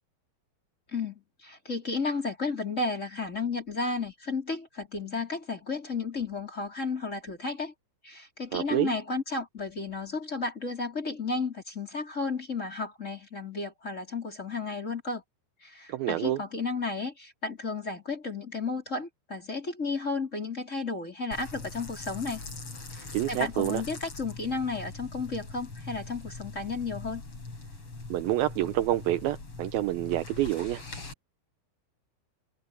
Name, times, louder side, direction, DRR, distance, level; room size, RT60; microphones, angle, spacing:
voice 1, 0.9-7.7 8.0-15.2 15.6-22.4 22.9-27.2, left 4 dB, 20° left, 4.4 m, -33 dB
voice 2, 8.5-8.9 15.9-16.4 23.1-23.8 28.1-30.8, right 15 dB, 80° right, 2.3 m, -28 dB
sound 1, 21.3-31.1, left 3 dB, 35° left, 6.2 m, -42 dB
omnidirectional pair, 4.7 m